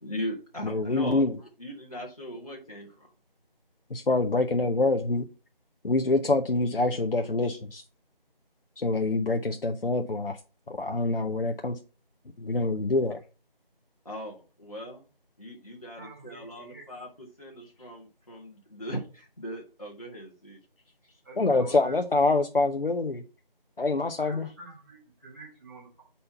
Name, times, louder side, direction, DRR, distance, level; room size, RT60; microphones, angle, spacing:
voice 1, 0.0-3.1 14.0-15.1 15.4-20.6, equal, 40° left, 1.2 m, -39 dB
voice 2, 0.6-1.3 3.9-5.3 5.8-7.8 8.8-10.4 10.7-11.8 12.4-13.2 21.4-23.2 23.8-24.5, left 2 dB, 70° left, 0.7 m, -25 dB
voice 3, 16.0-16.8 21.2-22.0 24.2-26.0, right 2 dB, 20° right, 2.2 m, -47 dB
5.5 x 4.3 x 5.5 m
figure-of-eight pair, 180°, 29 cm